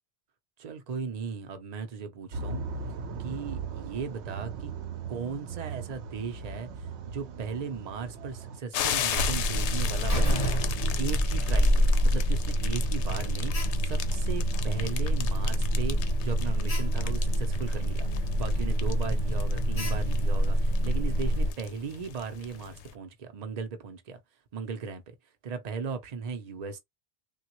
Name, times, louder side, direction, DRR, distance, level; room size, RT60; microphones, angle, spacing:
voice 1, 0.6-2.6 3.2-4.7 5.1-10.4 11.0-24.2 24.5-25.1 25.4-26.8, right 5 dB, 45° right, 0.6 m, -37 dB
sound 1, 2.3-8.6, right 5 dB, 75° right, 0.9 m, -38 dB
sound 2, 8.7-22.9, left 9 dB, 85° left, 0.9 m, -38 dB
Alarm, 9.1-21.5, equal, 35° left, 1.0 m, -26 dB
3.4 x 2.3 x 3.0 m
omnidirectional pair, 1.1 m